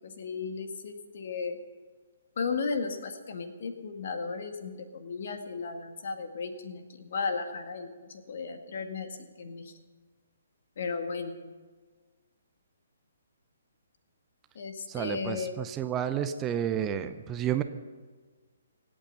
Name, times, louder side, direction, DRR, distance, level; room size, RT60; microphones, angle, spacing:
voice 1, 0.0-1.6 2.4-9.7 10.8-11.4 14.6-15.6, left 4 dB, 55° left, 6 dB, 2.0 m, -35 dB
voice 2, 14.9-17.6, right 10 dB, 20° right, 9 dB, 0.7 m, -31 dB
26.0 x 8.8 x 5.6 m, 1.5 s
figure-of-eight pair, 130°, 0 cm